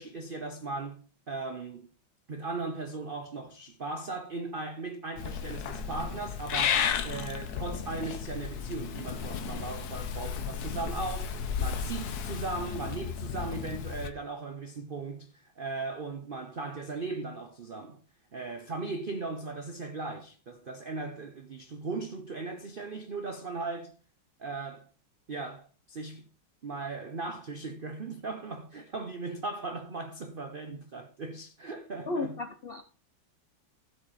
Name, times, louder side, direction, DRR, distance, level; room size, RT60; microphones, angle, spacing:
voice 1, 0.0-1.9 2.3-11.3 11.6-18.0 18.3-24.0 24.4-24.9 25.3-26.3 26.6-32.4, right 3 dB, 85° right, 0.4 m, -38 dB
Purr / Meow, 5.2-14.1, left 7 dB, 60° left, 1.2 m, -33 dB
voice 2, 32.1-32.8, left 3 dB, 90° left, 0.5 m, -33 dB
16.0 x 5.4 x 4.1 m
omnidirectional pair, 2.1 m